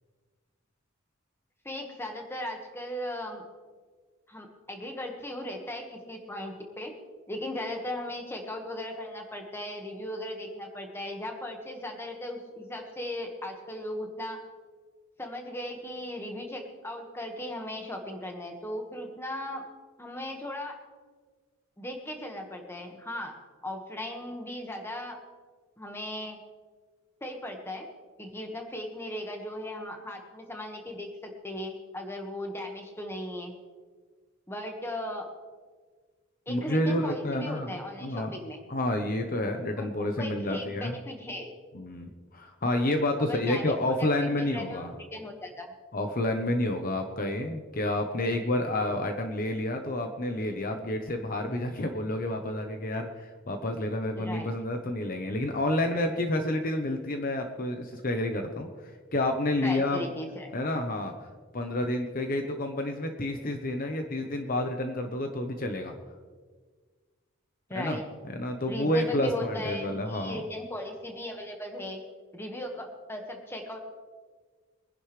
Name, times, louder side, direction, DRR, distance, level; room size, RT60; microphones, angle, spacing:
voice 1, 1.6-3.4 4.3-6.9 7.3-14.4 15.2-19.7 20.0-20.8 21.8-23.4 23.6-25.2 25.8-26.4 27.2-27.9 28.2-33.6 34.5-35.3 36.5-38.6 39.8-41.5 43.2-45.7 54.2-54.5 59.6-60.5 67.7-68.1 68.7-72.0 72.3-73.8, left 1 dB, 10° left, 2 dB, 1.6 m, -37 dB
voice 2, 36.5-37.7 38.0-38.3 38.7-40.9 41.7-44.9 45.9-58.7 59.1-60.1 60.5-61.1 61.5-65.9 67.8-68.0 68.3-70.4, left 1 dB, 45° left, 5 dB, 1.0 m, -29 dB
23.5 x 10.5 x 3.3 m, 1.5 s
head